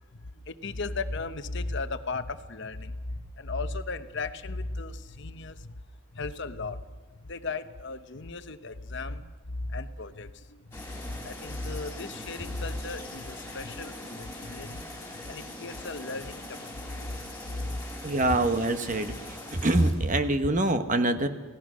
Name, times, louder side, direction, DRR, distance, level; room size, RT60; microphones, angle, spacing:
voice 1, 0.1-5.7 6.1-6.8 7.2-14.8 15.1-17.8, left 3 dB, 55° left, 10 dB, 1.0 m, -36 dB
sound 1, 10.7-19.9, left 1 dB, 10° left, 4.4 m, -42 dB
voice 2, 18.0-19.1 19.5-21.3, right 2 dB, 35° right, 8 dB, 1.2 m, -24 dB
28.5 x 17.5 x 6.3 m, 1.3 s
head